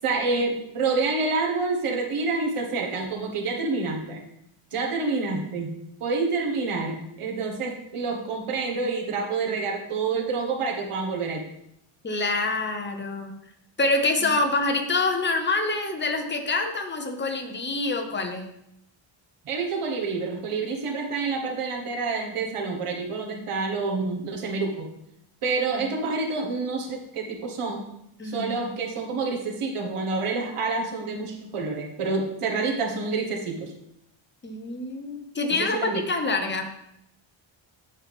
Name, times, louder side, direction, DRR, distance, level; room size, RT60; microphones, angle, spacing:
voice 1, 0.0-4.2 4.7-11.4 14.2-14.3 19.4-24.9 25.4-27.8 28.2-33.7 35.6-36.0, right 4 dB, 85° right, 1 dB, 1.5 m, -28 dB
voice 2, 12.0-13.3 13.8-18.5 25.8-25.9 28.2-28.5 34.4-35.8 36.1-36.7, left 3 dB, 20° left, 5 dB, 0.7 m, -26 dB
8.6 x 5.6 x 3.5 m, 0.80 s
wide cardioid pair, 165°, 50 cm